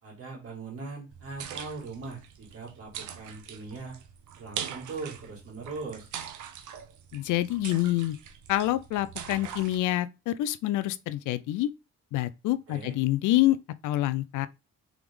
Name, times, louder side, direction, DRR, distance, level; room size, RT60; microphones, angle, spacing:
voice 1, 0.0-3.9 4.4-6.1 12.7-12.9, right 3 dB, 50° right, 2.3 m, -40 dB
sound 1, 1.1-9.8, right 8 dB, 75° right, 0.8 m, -42 dB
voice 2, 7.1-8.2 8.5-11.7 12.1-13.6 13.8-14.5, left 15 dB, 80° left, 0.5 m, -27 dB
3.6 x 3.4 x 3.6 m
cardioid pair, 90°, 30 cm